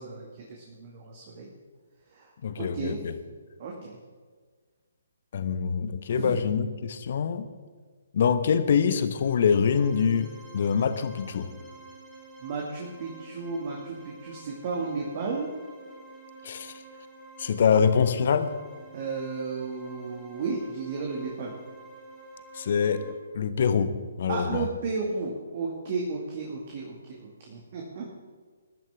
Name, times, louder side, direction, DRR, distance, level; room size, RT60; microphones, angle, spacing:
voice 1, 0.0-1.5 2.1-2.3 2.6-3.0 3.6-4.0 6.2-6.4 12.4-15.5 18.9-21.6 24.3-28.1, right 4 dB, 35° right, -1 dB, 2.2 m, -33 dB
voice 2, 2.4-3.1 5.3-7.5 8.1-11.5 16.4-16.7 17.4-18.5 22.5-23.0 23.3-24.7, left 6 dB, 45° left, 11 dB, 1.1 m, -25 dB
sound 1, 9.0-23.1, right 2 dB, 10° right, 4.7 m, -49 dB
20.5 x 12.0 x 3.7 m, 1.5 s
figure-of-eight pair, 135°, 0 cm